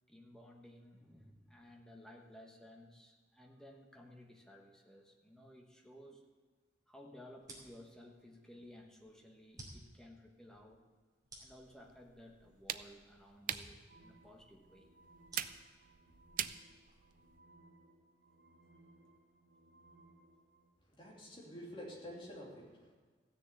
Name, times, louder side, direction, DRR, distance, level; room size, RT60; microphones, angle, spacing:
voice 1, 0.1-6.2 6.9-10.9 11.4-14.9, left 1 dB, 5° left, 0 dB, 1.3 m, -57 dB
sound 1, 7.4-17.2, right 1 dB, 20° right, 2.8 m, -58 dB
sound 2, 11.5-17.4, right 10 dB, 45° right, 0.4 m, -45 dB
sound 3, 13.9-20.7, right 2 dB, 85° right, 2.3 m, -64 dB
voice 2, 20.8-22.9, equal, 25° left, -4 dB, 3.1 m, -49 dB
14.5 x 6.8 x 8.3 m, 1.5 s
head